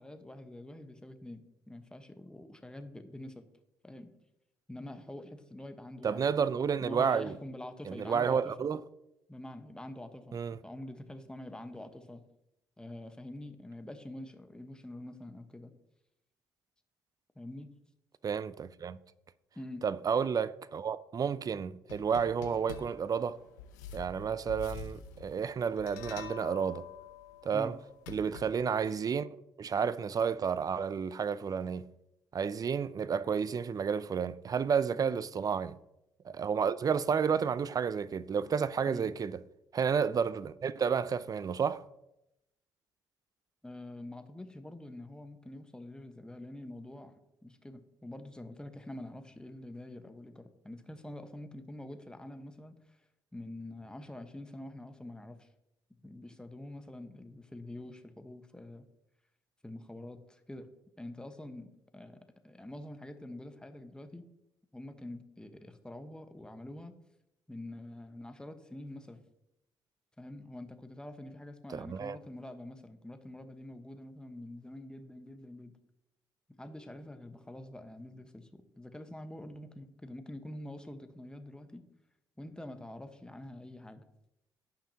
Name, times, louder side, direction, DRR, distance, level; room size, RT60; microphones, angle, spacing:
voice 1, 0.0-3.4 3.8-4.1 4.7-6.3 6.8-8.5 9.3-12.2 12.8-15.7 17.3-17.7 19.5-19.9 27.5-27.7 34.9-35.1 38.9-39.1 43.6-47.1 47.4-53.0 53.3-55.5 56.0-58.9 59.6-60.7 61.0-64.3 64.7-66.9 67.5-69.2 70.2-75.7 76.6-81.8 82.4-84.0, left 1 dB, 10° left, 1.2 m, -46 dB
voice 2, 6.0-7.4 7.9-8.8 10.3-10.6 18.2-19.0 19.8-23.4 23.9-26.9 27.4-27.8 28.1-29.3 29.6-31.9 32.3-35.8 36.2-39.3 39.7-41.8 71.7-72.2, right 6 dB, 40° right, 0.5 m, -31 dB
sound 1, 21.9-28.9, left 7 dB, 90° left, 0.8 m, -47 dB
17.0 x 5.8 x 2.9 m
hypercardioid pair, 50°, 9 cm